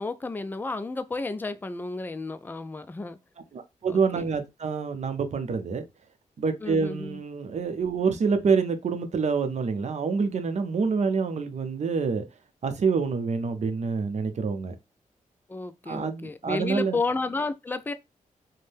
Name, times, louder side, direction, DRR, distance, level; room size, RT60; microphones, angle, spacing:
voice 1, 0.0-3.2 3.9-4.2 6.6-7.2 15.5-17.9, left 3 dB, 15° left, 0.3 m, -32 dB
voice 2, 3.5-5.8 6.4-12.3 12.6-14.8 15.9-17.0, right 5 dB, 55° right, 0.6 m, -27 dB
2.6 x 2.1 x 3.3 m
cardioid pair, 70°, 14 cm